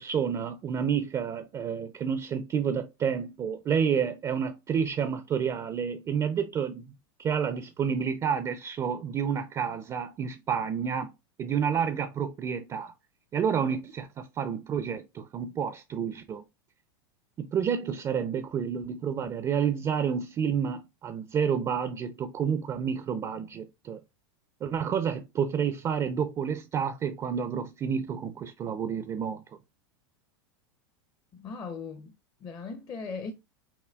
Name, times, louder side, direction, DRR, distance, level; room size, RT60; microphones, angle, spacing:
voice 1, 0.0-6.9 7.2-11.1 11.4-12.9 13.3-16.4 17.4-24.0 24.6-29.4, right 7 dB, 25° right, 0.4 m, -29 dB
voice 2, 31.3-33.3, left 4 dB, 30° left, 0.5 m, -39 dB
5.6 x 2.2 x 2.2 m
hypercardioid pair, 105°, 13 cm